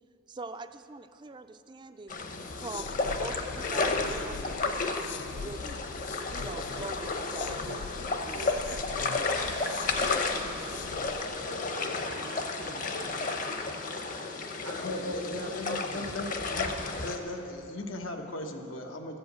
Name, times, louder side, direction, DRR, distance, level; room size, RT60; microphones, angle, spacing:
voice 1, 0.3-2.2 2.6-5.8 6.3-7.7 8.2-8.4 11.2-11.5, right 3 dB, 25° right, 10 dB, 0.3 m, -43 dB
sound 1, 2.1-17.2, left 3 dB, 40° left, 0.8 m, -32 dB
sound 2, 2.3-11.4, left 5 dB, 60° left, 0.3 m, -42 dB
voice 2, 7.4-7.8 8.3-11.1 11.4-13.8 14.6-16.1, right 3 dB, 75° right, 2 dB, 0.6 m, -46 dB
voice 3, 14.8-16.7 17.0-19.2, left 2 dB, 90° left, 4 dB, 1.1 m, -37 dB
14.0 x 7.8 x 8.0 m, 2.9 s
head